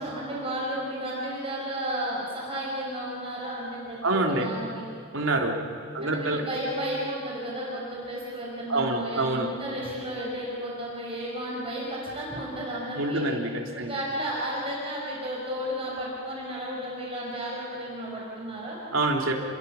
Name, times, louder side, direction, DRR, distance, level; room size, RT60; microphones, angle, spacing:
voice 1, 0.0-4.8 6.0-13.2 13.7-18.8, equal, 25° right, -4 dB, 5.6 m, -33 dB
voice 2, 4.0-4.5 5.1-5.5 5.9-6.4 8.7-9.5 12.9-13.9 18.9-19.4, right 2 dB, 70° right, 2 dB, 3.3 m, -26 dB
29.5 x 22.0 x 7.1 m, 2.5 s
head